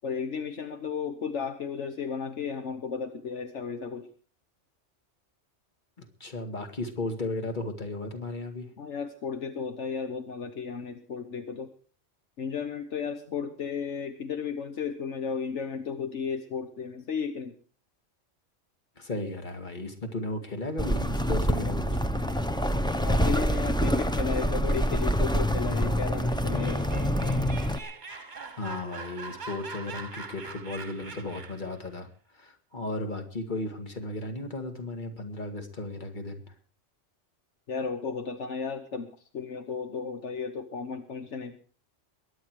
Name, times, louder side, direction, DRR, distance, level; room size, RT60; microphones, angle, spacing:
voice 1, 0.0-4.1 8.8-11.7 12.4-17.6 21.8-22.0 23.0-26.9 37.7-41.6, left 6 dB, 70° left, 8 dB, 1.4 m, -34 dB
voice 2, 6.0-8.7 19.0-22.0 28.6-32.1 32.3-36.4, left 2 dB, 40° left, 5 dB, 2.2 m, -35 dB
sound 1, 20.8-27.8, equal, 5° left, 0.7 m, -26 dB
Laughter, 26.3-31.7, right 3 dB, 40° right, 1.3 m, -42 dB
22.0 x 9.8 x 4.7 m, 0.40 s
omnidirectional pair, 1.3 m